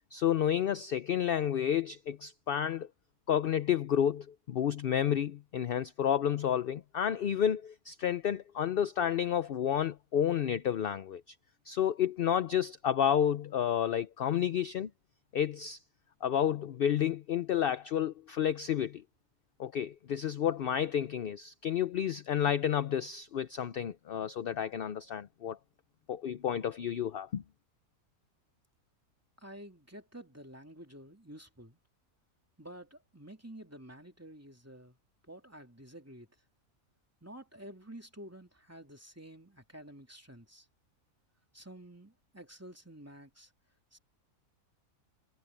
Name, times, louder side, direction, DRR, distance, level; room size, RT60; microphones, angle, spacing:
voice 1, 0.1-2.9 3.3-11.2 11.7-14.9 15.3-15.8 16.2-19.0 19.6-25.6 26.1-27.4, left 9 dB, 55° left, 0.6 m, -30 dB
voice 2, 29.4-31.8 32.6-35.0 35.2-36.3 37.2-40.7 41.5-43.5 43.9-44.0, right 1 dB, 10° right, 2.9 m, -50 dB
omnidirectional pair, 1.5 m